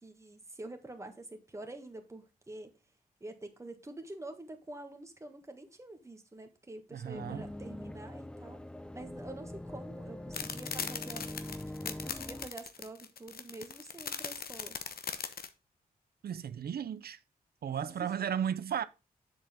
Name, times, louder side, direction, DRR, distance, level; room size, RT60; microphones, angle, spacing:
voice 1, 0.0-2.8 3.2-8.6 8.9-11.3 11.8-14.8 17.7-18.1, right 2 dB, 20° right, 1.7 m, -47 dB
voice 2, 6.9-7.5 16.2-17.2 17.6-18.8, right 8 dB, 75° right, 0.6 m, -35 dB
sound 1, 7.1-12.5, left 1 dB, 5° left, 0.4 m, -43 dB
sound 2, 10.3-15.5, left 7 dB, 70° left, 1.0 m, -39 dB
7.6 x 7.2 x 3.5 m
wide cardioid pair, 125°, 16 cm